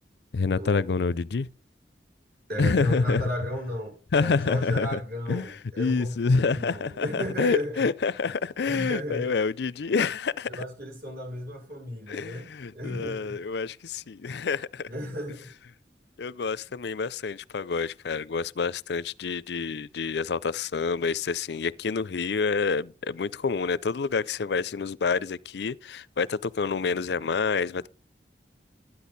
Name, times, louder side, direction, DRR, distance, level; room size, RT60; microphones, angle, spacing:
voice 1, 0.3-1.5 2.6-3.2 4.1-5.0 5.3-10.6 12.1-14.9 16.2-27.9, left 4 dB, 70° left, 0.5 m, -27 dB
voice 2, 2.5-7.9 8.6-9.3 10.5-13.4 14.9-15.5, equal, 55° right, 7.1 m, -34 dB
13.0 x 10.0 x 4.1 m
head